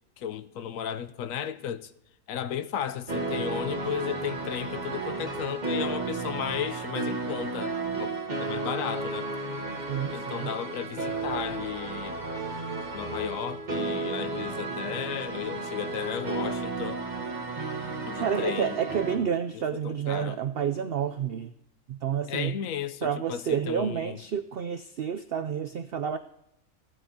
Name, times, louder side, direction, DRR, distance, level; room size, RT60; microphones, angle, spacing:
voice 1, 0.2-1.9 2.3-8.1 8.4-9.3 10.1-12.2 12.9-17.0 18.1-18.8 19.5-20.4 22.3-24.2, left 9 dB, 70° left, 1.0 m, -34 dB
sound 1, 3.1-19.2, right 3 dB, 30° right, 1.5 m, -33 dB
voice 2, 9.9-10.5 18.2-21.5 21.9-22.6 23.0-26.2, right 8 dB, 75° right, 0.5 m, -29 dB
16.0 x 12.0 x 2.8 m
omnidirectional pair, 1.6 m